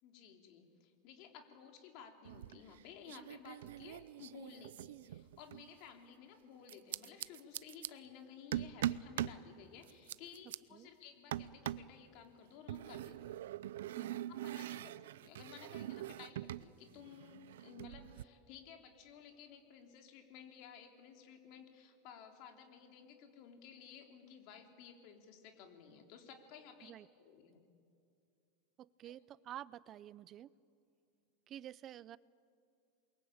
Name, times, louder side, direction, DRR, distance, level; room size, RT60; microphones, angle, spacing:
voice 1, 0.0-13.4 14.3-27.7 29.0-29.2, left 7 dB, 50° left, 4 dB, 3.6 m, -56 dB
sound 1, 2.3-2.8 3.1-5.7 6.7-7.9 8.5-9.4 9.8-10.6 11.3-11.9 12.7-16.7 16.9-18.2, right 12 dB, 90° right, 0.6 m, -42 dB
voice 2, 13.9-14.3 26.8-27.1 28.8-30.5 31.5-32.2, right 11 dB, 30° right, 19 dB, 0.6 m, -50 dB
28.5 x 22.5 x 8.7 m, 2.5 s
supercardioid pair, 150°, 0 cm